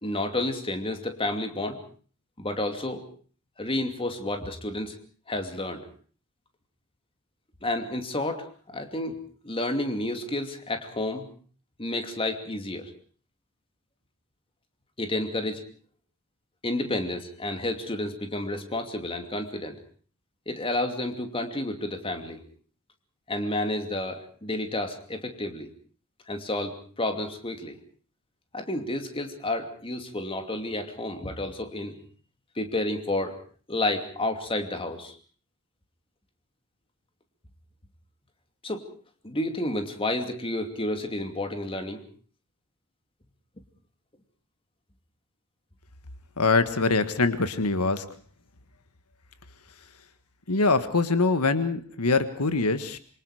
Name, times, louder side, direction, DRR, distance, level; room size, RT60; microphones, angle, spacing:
voice 1, 0.0-1.8 2.4-3.0 3.6-4.9 5.3-5.9 7.6-8.5 8.7-9.2 9.4-11.3 11.8-12.9 15.0-15.6 16.6-19.8 20.5-22.4 23.3-25.7 26.3-27.8 28.5-32.0 32.6-33.4 33.7-35.1 38.6-38.8 39.2-42.0, left 1 dB, 25° left, 6 dB, 2.7 m, -30 dB
voice 2, 46.4-48.0 50.5-53.0, left 3 dB, 85° left, 11 dB, 1.6 m, -23 dB
26.5 x 24.5 x 5.0 m, 0.43 s
head